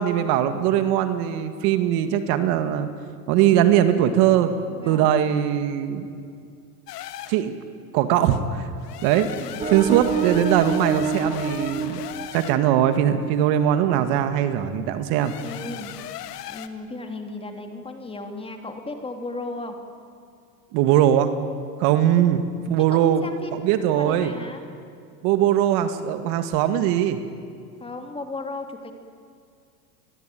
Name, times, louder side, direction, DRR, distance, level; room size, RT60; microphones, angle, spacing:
voice 1, 0.0-2.9 3.3-4.5 4.9-6.1 7.3-7.6 7.9-8.7 9.0-9.3 9.7-12.0 12.3-15.3 20.7-21.3 21.8-22.4 22.7-23.2 23.5-24.3 25.2-27.2, right 11 dB, 50° right, 9 dB, 2.0 m, -20 dB
voice 2, 4.7-5.2 9.3-9.7 15.2-19.8 22.9-24.6 27.8-28.9, left 2 dB, 10° left, 5 dB, 2.9 m, -36 dB
sound 1, 6.9-7.4 8.8-12.6 15.1-16.7, left 12 dB, 75° left, 1.9 m, -38 dB
sound 2, 9.6-13.2, right 4 dB, 15° right, 1.0 m, -28 dB
29.5 x 21.5 x 9.3 m, 2.2 s
supercardioid pair, 135°, 49 cm